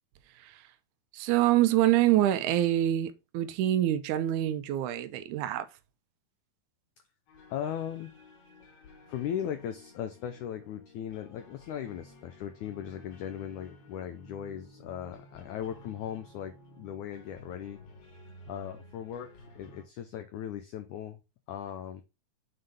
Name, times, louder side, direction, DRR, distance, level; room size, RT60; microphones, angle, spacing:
voice 1, 1.1-5.7, right 13 dB, 85° right, 1.7 m, -26 dB
sound 1, 7.3-19.9, left 1 dB, 70° left, 3.5 m, -54 dB
voice 2, 7.5-8.1 9.1-17.8 18.5-19.3 19.5-21.2 21.5-22.0, left 9 dB, 85° left, 1.7 m, -38 dB
7.7 x 3.9 x 4.9 m
omnidirectional pair, 4.5 m